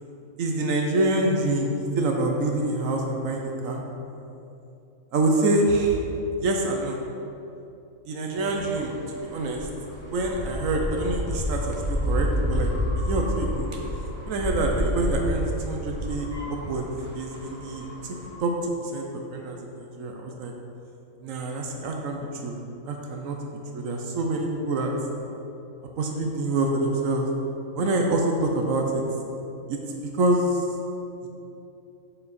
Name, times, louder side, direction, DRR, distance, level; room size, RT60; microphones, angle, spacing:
voice 1, 0.4-3.8 5.1-6.1 6.4-7.0 8.0-9.7 10.1-12.7 13.0-13.7 14.3-16.9 17.1-20.5 21.2-22.6 22.9-23.4 23.7-24.9 26.0-27.3 27.7-29.0 29.7-30.7 31.2-31.3, right 2 dB, 75° right, 1 dB, 1.1 m, -26 dB
sound 1, 8.3-18.4, equal, 35° right, 1.4 m, -30 dB
6.8 x 5.5 x 4.1 m, 2.8 s
omnidirectional pair, 1.4 m